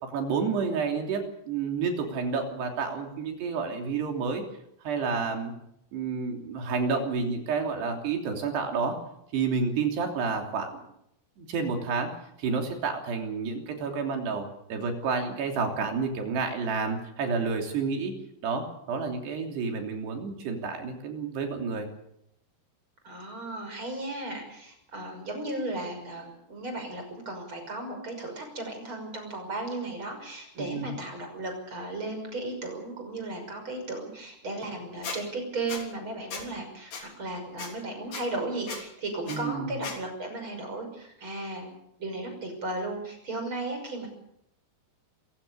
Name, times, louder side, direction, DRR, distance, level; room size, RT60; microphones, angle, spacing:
voice 1, 0.0-4.4 4.9-5.5 5.9-9.0 9.3-10.8 11.4-12.1 12.4-18.1 18.4-21.9 30.6-30.9 39.3-39.7, right 5 dB, 85° right, 3 dB, 5.2 m, -30 dB
voice 2, 23.0-41.7 42.0-44.1, right 2 dB, 30° right, 5 dB, 6.5 m, -35 dB
Squeak, 35.0-35.2 35.7-35.8 36.3-36.5 36.9-37.0 37.6-37.7 38.1-38.2 38.7-38.8 39.3-39.4 39.8-40.0, left 5 dB, 55° left, 5.1 m, -36 dB
26.5 x 16.0 x 6.9 m, 0.77 s
omnidirectional pair, 4.7 m